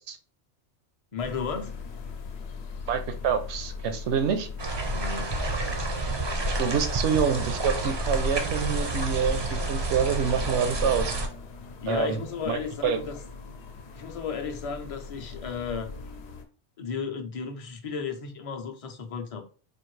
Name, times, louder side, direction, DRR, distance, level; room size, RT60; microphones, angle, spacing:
voice 1, 1.1-1.8 4.8-5.3 11.8-13.2 13.9-15.9 16.8-19.4, left 6 dB, 40° left, 0.5 m, -34 dB
sound 1, 1.2-16.5, left 4 dB, 70° left, 0.9 m, -41 dB
voice 2, 2.9-4.5 6.6-11.2 11.9-12.2 12.5-13.0, right 7 dB, 75° right, 0.8 m, -27 dB
sound 2, 4.6-11.3, right 1 dB, 35° right, 0.4 m, -29 dB
4.4 x 2.5 x 3.1 m
omnidirectional pair, 1.2 m